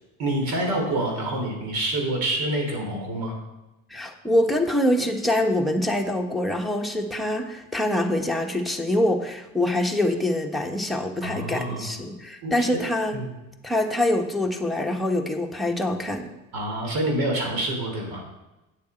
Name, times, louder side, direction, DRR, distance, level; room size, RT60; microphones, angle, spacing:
voice 1, 0.2-3.3 11.2-11.9 12.4-12.7 13.1-13.3 16.5-18.2, right 1 dB, 60° right, 1 dB, 3.5 m, -27 dB
voice 2, 3.9-13.2 13.6-16.3, left 1 dB, ahead, 1 dB, 1.3 m, -25 dB
9.2 x 7.0 x 4.5 m, 1.0 s
hypercardioid pair, 70°, 40 cm